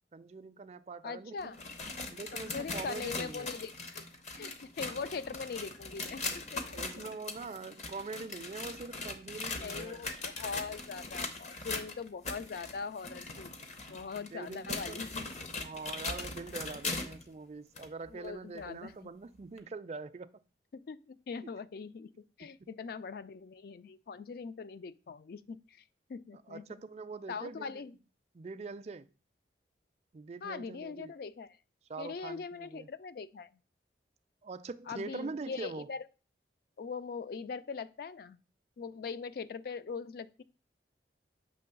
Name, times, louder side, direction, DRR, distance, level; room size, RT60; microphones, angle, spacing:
voice 1, 0.1-1.6 2.1-3.5 4.4-4.5 4.8-4.9 6.7-10.1 14.3-15.1 15.6-20.3 21.4-21.5 22.4-22.7 26.3-27.8 28.3-29.1 30.1-31.2 31.9-32.9 34.4-35.9, right 4 dB, 35° right, 0.3 m, -43 dB
voice 2, 1.0-1.6 2.3-4.1 4.3-7.1 9.6-13.6 13.9-15.2 18.1-19.1 20.7-22.1 22.4-25.8 26.1-26.6 27.3-27.9 30.4-31.6 32.0-33.5 34.9-36.0 36.8-38.4 38.8-40.4, left 5 dB, 55° left, 0.3 m, -41 dB
sound 1, 1.4-17.3 17.8-17.9 18.6-18.7 19.6-19.7, left 3 dB, 40° left, 0.8 m, -40 dB
6.9 x 3.1 x 5.8 m
head